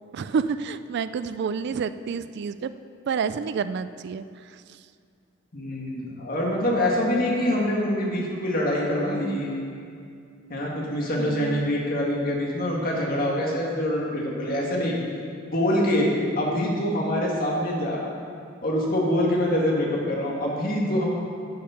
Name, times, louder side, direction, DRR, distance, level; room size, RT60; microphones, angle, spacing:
voice 1, 0.1-2.7 3.0-4.8 11.2-11.6, right 6 dB, 55° right, 13 dB, 0.3 m, -29 dB
voice 2, 5.5-9.5 10.5-15.0 15.5-18.0 18.6-21.0, left 1 dB, 45° left, -3 dB, 2.0 m, -25 dB
10.5 x 6.6 x 5.7 m, 2.3 s
head